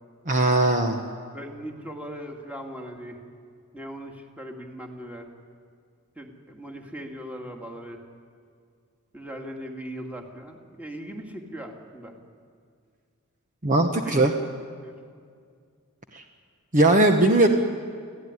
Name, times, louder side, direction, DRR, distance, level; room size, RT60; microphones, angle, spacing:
voice 1, 0.3-1.0 13.6-14.3 16.1-16.2 16.7-17.5, right 2 dB, 35° right, 4 dB, 1.2 m, -19 dB
voice 2, 1.3-3.2 3.7-5.3 6.2-8.0 9.1-12.1 14.0-14.4 14.8-15.0, equal, 5° right, 2 dB, 2.3 m, -39 dB
28.5 x 15.0 x 9.8 m, 2.2 s
head